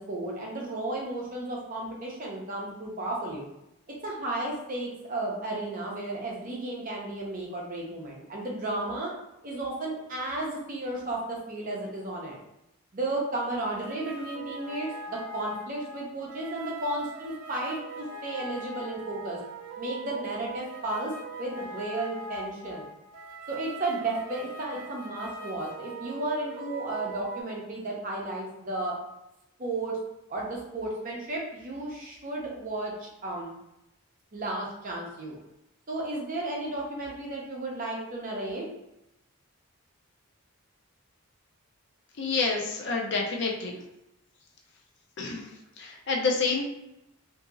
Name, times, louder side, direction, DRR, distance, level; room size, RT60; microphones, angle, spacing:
voice 1, 0.0-3.5 4.0-9.1 9.4-12.4 12.9-19.4 19.8-21.1 21.4-22.9 23.5-28.9 29.6-30.0 30.3-33.5 34.3-35.4 35.9-38.7, right 2 dB, 35° right, -2 dB, 0.6 m, -33 dB
sound 1, 13.7-27.4, right 2 dB, 70° right, 0.3 m, -41 dB
voice 2, 42.2-43.8 45.2-45.5 45.8-46.7, left 4 dB, 50° left, 0 dB, 0.5 m, -28 dB
2.8 x 2.6 x 2.4 m, 0.87 s
head